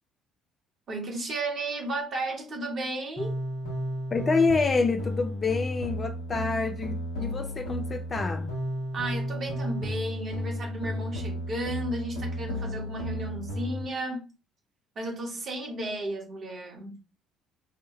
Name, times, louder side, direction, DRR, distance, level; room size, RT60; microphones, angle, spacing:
voice 1, 0.9-3.4 8.9-14.3 14.9-17.0, right 2 dB, 45° right, 1.2 m, -34 dB
sound 1, 3.2-13.8, equal, 70° left, 1.1 m, -33 dB
voice 2, 4.1-8.5, left 4 dB, 30° left, 0.4 m, -27 dB
2.9 x 2.1 x 3.0 m
figure-of-eight pair, 50°, 0 cm